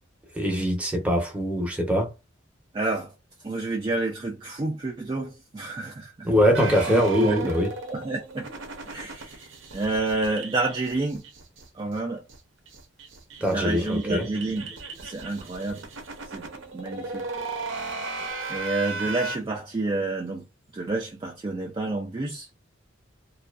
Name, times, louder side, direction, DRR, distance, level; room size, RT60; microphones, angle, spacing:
voice 1, 0.3-2.1 6.2-7.7 13.4-14.3, equal, 5° right, 0.7 m, -23 dB
voice 2, 2.7-3.1 3.4-6.3 6.9-7.5 7.9-8.5 8.9-9.5 9.7-11.2 11.7-12.2 13.4-14.7 15.0-15.8 16.3-17.2 18.5-20.4 20.7-22.5, right 2 dB, 25° right, 0.3 m, -29 dB
sound 1, 6.5-11.6 11.9-12.0 12.3-12.4 12.7-19.4, right 3 dB, 70° right, 0.6 m, -36 dB
2.5 x 2.3 x 2.3 m
head